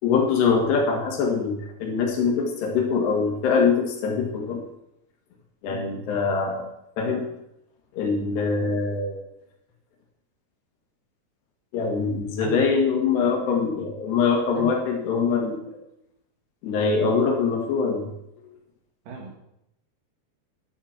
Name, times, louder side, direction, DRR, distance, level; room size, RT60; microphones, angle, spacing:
voice 1, 0.0-4.6 5.6-6.6 7.0-7.3 8.0-9.2 11.7-15.7 16.6-18.1, left 5 dB, 85° left, 0 dB, 4.0 m, -23 dB
voice 2, 19.1-19.4, right 4 dB, 60° right, 0 dB, 3.8 m, -38 dB
11.0 x 9.0 x 5.9 m, 0.83 s
omnidirectional pair, 4.7 m